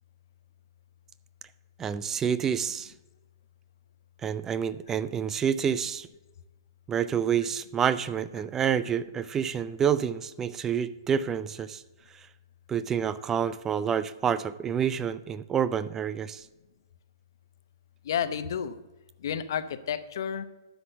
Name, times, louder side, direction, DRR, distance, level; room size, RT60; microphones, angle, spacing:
voice 1, 1.8-2.9 4.2-6.1 6.9-11.8 12.2-12.3 12.7-16.4, right 8 dB, 15° right, 16 dB, 0.4 m, -28 dB
voice 2, 18.0-18.8 19.2-20.4, left 8 dB, 65° left, 12 dB, 0.8 m, -31 dB
12.5 x 4.2 x 6.7 m, 1.1 s
hypercardioid pair, 130°, 2 cm